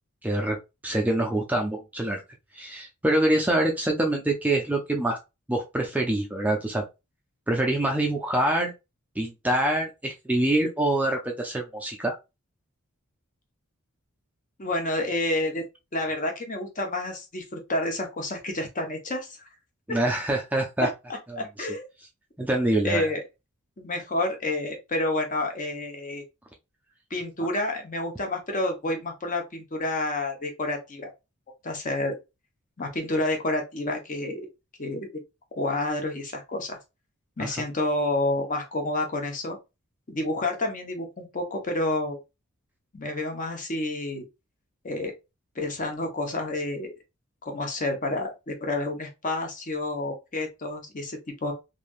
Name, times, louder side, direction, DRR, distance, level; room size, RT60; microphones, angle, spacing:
voice 1, 0.2-0.6 0.8-2.2 2.5-5.2 5.5-6.8 7.5-8.7 9.2-12.2 19.9-20.9 21.3-21.7 22.4-23.1 37.4-37.5, right 1 dB, 5° right, 0.4 m, -25 dB
voice 2, 14.6-15.6 15.9-19.4 19.9-20.0 20.8-21.9 22.8-23.2 23.8-26.2 27.1-31.1 31.6-32.1 32.8-34.5 34.8-35.1 35.5-36.8 37.4-39.6 40.1-42.2 42.9-44.2 44.8-45.1 45.6-46.9 47.4-51.5, left 2 dB, 35° left, 0.9 m, -29 dB
3.3 x 2.6 x 2.3 m
head